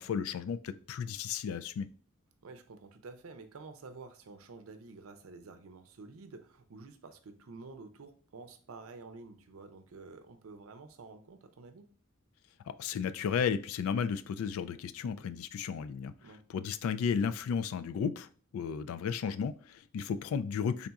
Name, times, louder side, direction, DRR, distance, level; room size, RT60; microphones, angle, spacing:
voice 1, 0.0-1.9 12.7-16.1 16.5-18.3 18.5-20.9, left 6 dB, 80° left, 0.3 m, -33 dB
voice 2, 2.4-11.9 16.2-16.4, right 3 dB, 75° right, 0.5 m, -50 dB
3.6 x 2.4 x 3.9 m
head